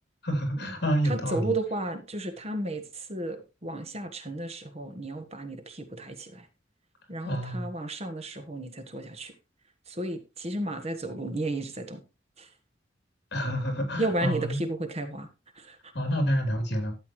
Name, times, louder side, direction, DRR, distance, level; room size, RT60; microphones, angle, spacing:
voice 1, 0.2-1.5 7.2-7.7 13.3-14.6 15.9-17.0, equal, 60° left, 3.3 m, -28 dB
voice 2, 1.0-6.5 7.1-9.3 9.9-12.0 12.4-12.5 14.0-15.3 15.5-15.8, right 2 dB, 35° right, 1.4 m, -33 dB
12.5 x 8.2 x 3.1 m
head